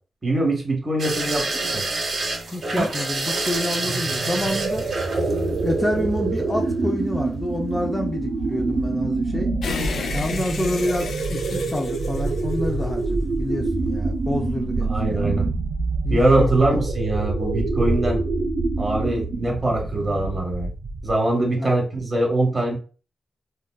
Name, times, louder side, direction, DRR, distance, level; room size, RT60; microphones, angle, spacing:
voice 1, 0.2-1.9 14.8-15.5 16.1-18.2 18.8-20.7 21.0-22.8, right 1 dB, 30° right, 1 dB, 1.1 m, -23 dB
sound 1, 1.0-7.0 8.3-8.6 8.9-9.0, right 2 dB, 55° right, 0.8 m, -28 dB
voice 2, 2.5-4.8 5.1-5.3 5.6-9.5 10.1-15.2 16.0-16.8 21.5-21.7, left 1 dB, 15° left, 2 dB, 0.4 m, -28 dB
sound 2, 3.7-21.3, right 3 dB, 80° right, 0.4 m, -26 dB
sound 3, 9.6-13.1, left 5 dB, 80° left, 0.4 m, -33 dB
3.7 x 2.2 x 2.2 m, 0.37 s
wide cardioid pair, 105°, 0 cm